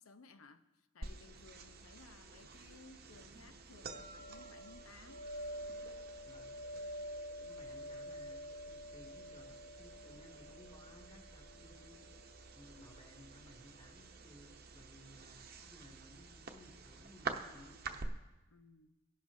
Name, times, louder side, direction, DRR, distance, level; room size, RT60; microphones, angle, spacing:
voice 1, 0.0-5.5 7.4-7.8 18.5-19.0, left 4 dB, 85° left, 0.8 m, -60 dB
sound 1, 1.0-18.1, right 2 dB, 45° right, 0.8 m, -47 dB
voice 2, 6.2-6.6 7.5-12.3 12.5-17.8, equal, 25° left, 2.4 m, -59 dB
23.0 x 11.0 x 2.7 m
head